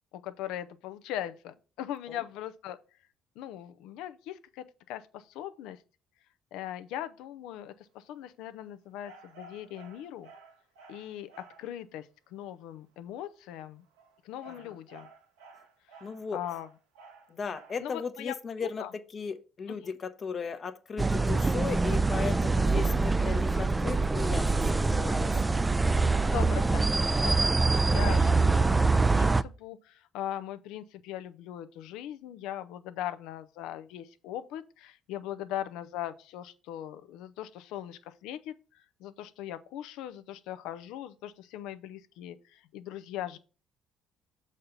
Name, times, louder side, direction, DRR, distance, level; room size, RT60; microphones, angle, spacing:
voice 1, 0.1-2.8 3.4-5.8 6.5-10.3 10.9-11.3 11.6-13.8 14.2-15.1 16.3-16.7 17.8-18.3 18.6-18.9 19.7-19.8 26.2-26.9 27.2-43.4, left 11 dB, 70° left, 0.5 m, -40 dB
sound 1, 9.0-11.7 13.8-17.9, right 3 dB, 80° right, 1.1 m, -53 dB
voice 2, 16.0-16.4 17.3-18.8 19.1-24.6 24.9-25.4, left 5 dB, 45° left, 0.8 m, -36 dB
sound 2, 21.0-29.4, right 3 dB, 20° right, 0.4 m, -25 dB
sound 3, 22.8-28.1, right 2 dB, 60° right, 1.4 m, -55 dB
6.6 x 4.2 x 5.2 m
hypercardioid pair, 50°, 0 cm